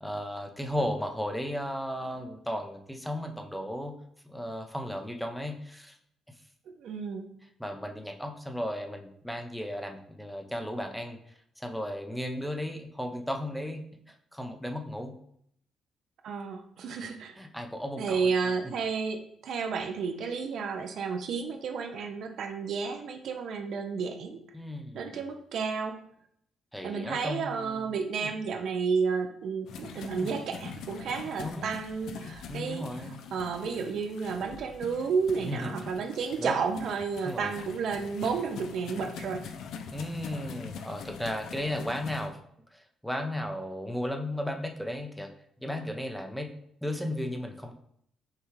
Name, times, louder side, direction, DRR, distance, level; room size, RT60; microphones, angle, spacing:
voice 1, 0.0-3.9 4.2-6.0 7.6-15.1 17.4-18.3 18.6-18.7 24.5-25.2 26.7-28.0 28.2-28.3 30.0-30.3 31.4-31.7 32.5-33.2 35.4-35.9 36.4-36.6 37.2-37.5 39.9-42.4 42.7-45.3 45.6-46.5 46.8-47.7, left 1 dB, ahead, 3 dB, 0.6 m, -35 dB
voice 2, 6.8-7.3 16.2-17.4 18.0-24.4 24.9-26.0 26.8-32.9 33.3-39.4, right 5 dB, 70° right, 6 dB, 0.5 m, -31 dB
sound 1, 29.7-42.3, left 6 dB, 75° left, 0.4 m, -44 dB
5.5 x 2.3 x 3.2 m, 0.69 s
cardioid pair, 90°, 0 cm